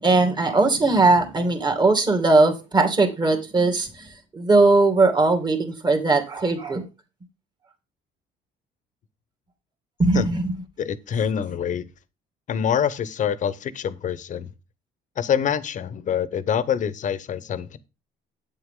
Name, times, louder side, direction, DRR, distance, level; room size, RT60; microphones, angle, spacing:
voice 1, 0.0-4.1 4.3-6.8 10.0-10.5, right 3 dB, 25° right, 2.4 m, -19 dB
voice 2, 10.8-11.8 12.5-14.5 15.2-17.8, left 8 dB, 50° left, 0.9 m, -25 dB
8.7 x 8.1 x 3.8 m
cardioid pair, 110°, 17 cm